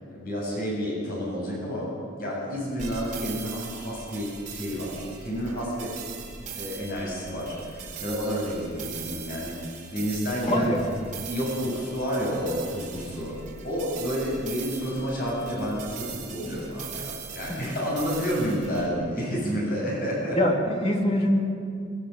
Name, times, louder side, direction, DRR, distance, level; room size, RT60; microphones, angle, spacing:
voice 1, 0.1-5.9 6.5-10.7 11.3-13.4 13.6-20.4, equal, 50° left, -4 dB, 7.8 m, -30 dB
sound 1, 2.8-18.9, right 6 dB, 40° right, 4.1 m, -41 dB
voice 2, 10.4-10.9 17.5-17.6 20.3-21.4, left 1 dB, 30° left, 1 dB, 3.1 m, -23 dB
23.0 x 22.5 x 7.4 m, 2.4 s
head